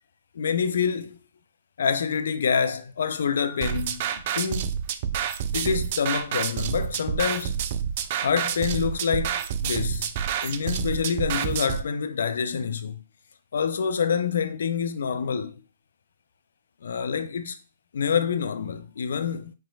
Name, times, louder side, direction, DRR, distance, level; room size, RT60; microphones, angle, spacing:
voice 1, 0.3-1.2 1.8-4.7 5.5-7.6 8.2-10.1 10.4-13.0 13.5-15.6 16.8-17.6 17.9-19.5, left 6 dB, 65° left, 0.4 m, -27 dB
sound 1, 3.6-11.8, right 8 dB, 45° right, 0.4 m, -28 dB
4.5 x 3.6 x 2.3 m
figure-of-eight pair, 120°, 0 cm